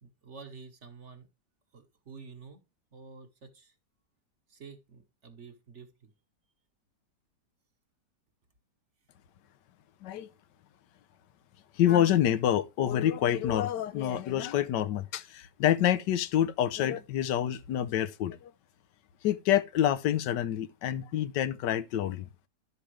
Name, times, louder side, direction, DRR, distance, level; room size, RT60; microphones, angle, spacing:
voice 1, 0.0-1.3 1.7-2.6 2.9-3.7 4.5-6.1, right 5 dB, 45° right, 1.4 m, -49 dB
voice 2, 11.8-18.5 19.2-22.3, left 11 dB, 85° left, 1.4 m, -27 dB
11.5 x 7.5 x 3.2 m
omnidirectional pair, 1.8 m